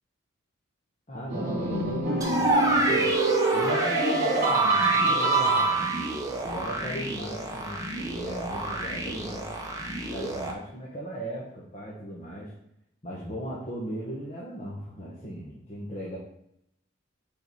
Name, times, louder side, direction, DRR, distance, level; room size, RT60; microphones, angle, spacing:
voice 1, 1.1-3.1 3.5-5.8 6.4-9.5 10.1-12.5 13.0-16.2, equal, 35° left, -5 dB, 1.2 m, -37 dB
sound 1, 1.3-6.2, right 3 dB, 45° right, 2.8 m, -25 dB
sound 2, 2.2-10.5, right 1 dB, 15° right, 0.9 m, -29 dB
5.3 x 4.9 x 5.4 m, 0.77 s
head